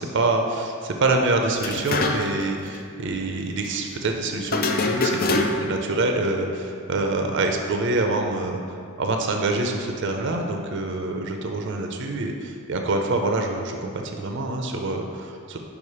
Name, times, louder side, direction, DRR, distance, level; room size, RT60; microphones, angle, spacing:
voice 1, 0.0-8.6 9.0-15.6, right 2 dB, 55° right, 3 dB, 0.5 m, -26 dB
sound 1, 1.6-2.5 2.7-2.8 4.5-5.8, left 2 dB, 40° left, 0.4 m, -24 dB
5.0 x 4.9 x 5.5 m, 2.4 s
head